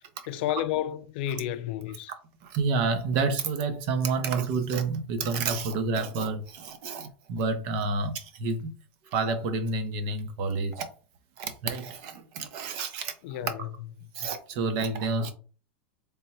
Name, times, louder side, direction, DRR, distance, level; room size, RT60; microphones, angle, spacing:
voice 1, 0.3-2.1 13.2-13.7 14.0-14.1, left 12 dB, 60° left, 0.4 m, -31 dB
voice 2, 2.4-8.7 9.1-10.9 11.4-13.1 14.1-15.3, right 4 dB, 50° right, 0.8 m, -29 dB
3.5 x 2.2 x 4.2 m
supercardioid pair, 145°, 6 cm